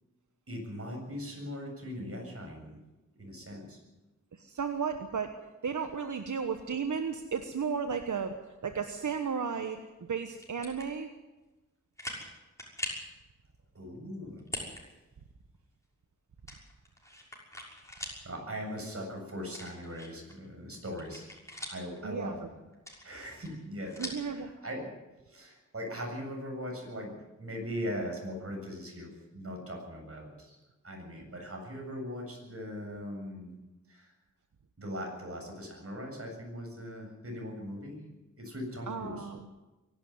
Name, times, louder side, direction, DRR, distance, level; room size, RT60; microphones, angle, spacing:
voice 1, 0.5-2.8 3.2-3.8 13.7-14.4 18.2-21.3 21.7-22.5 23.0-24.9 25.2-30.6 30.8-33.5 33.9-34.1 34.8-38.0 38.4-39.3, equal, 50° right, 1 dB, 7.6 m, -40 dB
voice 2, 4.3-5.3 5.6-8.3 8.6-9.8 10.1-11.1 22.0-22.5 24.0-24.5 38.9-39.5, right 6 dB, 85° right, 7 dB, 1.2 m, -34 dB
sound 1, 10.4-10.9 11.4-11.5 12.0-12.3 12.6-13.1 14.4-14.8 15.2-15.3 16.5-18.2 18.6-18.7 19.5-20.3 20.7-22.0 22.7-24.3, left 1 dB, 10° left, 6.3 m, -41 dB
23.5 x 12.0 x 9.5 m, 1.1 s
wide cardioid pair, 65°, 30 cm